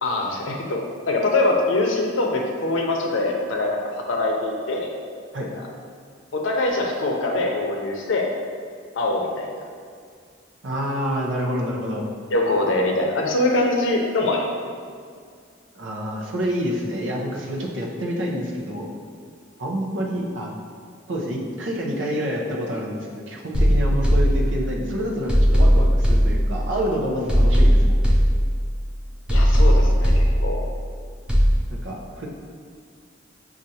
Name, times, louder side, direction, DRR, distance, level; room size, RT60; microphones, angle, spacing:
voice 1, 0.0-4.9 5.6-5.7 6.3-8.3 9.0-9.7 12.3-14.4 29.3-30.6, left 2 dB, 80° left, 0 dB, 0.6 m, -23 dB
voice 2, 10.6-12.1 15.7-18.9 19.6-20.5 21.1-28.2 31.7-32.3, equal, 75° right, -1 dB, 0.6 m, -28 dB
sound 1, 23.5-24.8 25.3-26.8 27.3-28.8 29.3-30.8 31.3-31.6, equal, 5° right, 0.4 m, -18 dB
6.3 x 2.5 x 2.8 m, 2.1 s
head